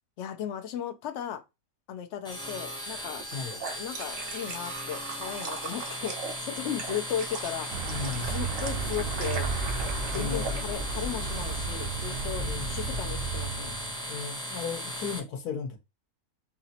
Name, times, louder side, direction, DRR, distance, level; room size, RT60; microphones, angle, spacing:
voice 1, 0.2-1.4 1.9-3.2 3.5-7.7 8.2-9.5 10.1-13.8, left 9 dB, 60° left, 0.8 m, -36 dB
sound 1, 2.2-15.2, equal, 5° left, 0.6 m, -37 dB
sound 2, 3.2-10.6, right 5 dB, 60° right, 1.2 m, -40 dB
Vehicle, 7.7-14.1, right 4 dB, 85° right, 1.2 m, -33 dB
voice 2, 7.8-8.4 10.1-10.6 12.4-12.7 14.1-15.8, left 6 dB, 90° left, 1.4 m, -35 dB
4.8 x 3.0 x 2.8 m
omnidirectional pair, 1.6 m